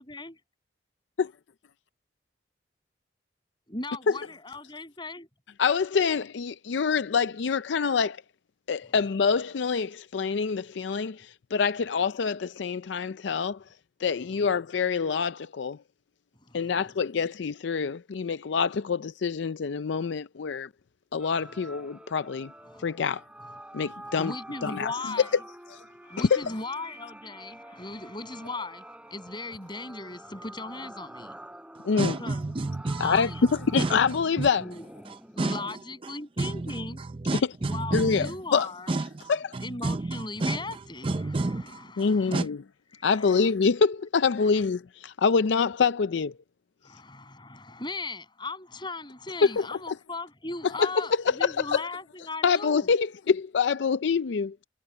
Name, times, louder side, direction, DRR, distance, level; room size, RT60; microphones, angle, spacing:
voice 1, 0.0-0.3 3.7-5.3 16.4-16.7 22.7-22.9 24.0-25.4 26.0-31.4 32.0-32.5 33.0-33.6 34.6-34.9 35.3-37.0 37.6-38.9 39.6-42.4 42.9-43.5 44.4-44.6 46.8-52.9, left 3 dB, 25° left, 7.2 m, -38 dB
voice 2, 5.6-8.2 8.7-13.6 14.0-15.8 16.5-20.7 21.1-22.5 22.8-23.2 23.7-24.3 24.6-24.9 26.2-26.4 31.9-32.2 33.0-34.6 37.9-38.7 39.3-39.4 42.0-42.6 43.0-46.3 49.6-50.0 50.8-50.9 51.3-51.8 52.4-54.5, left 5 dB, 70° left, 0.4 m, -26 dB
sound 1, 21.2-35.6, right 1 dB, 5° right, 3.4 m, -47 dB
voice 3, 32.0-34.5 35.0-38.4 38.9-42.5, right 2 dB, 30° right, 0.5 m, -31 dB
head